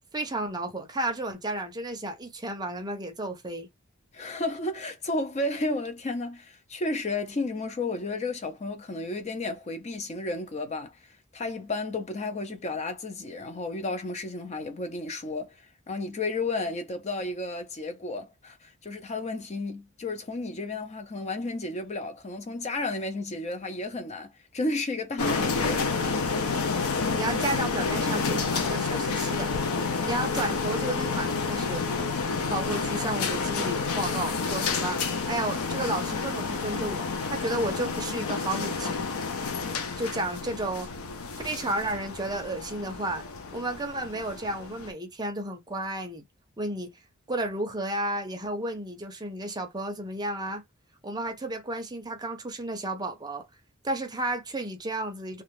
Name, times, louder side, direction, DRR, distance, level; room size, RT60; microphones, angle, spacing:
voice 1, 0.1-3.7 27.2-29.5 30.0-31.8 32.4-39.1 40.0-40.9 41.4-43.2 43.5-46.3 46.6-46.9 47.3-50.6 51.0-53.5 53.8-55.4, right 1 dB, 20° right, 0.6 m, -32 dB
voice 2, 4.1-25.8, left 2 dB, 30° left, 0.5 m, -32 dB
sound 1, 25.2-44.9, left 4 dB, 85° left, 0.6 m, -29 dB
2.5 x 2.3 x 3.1 m
head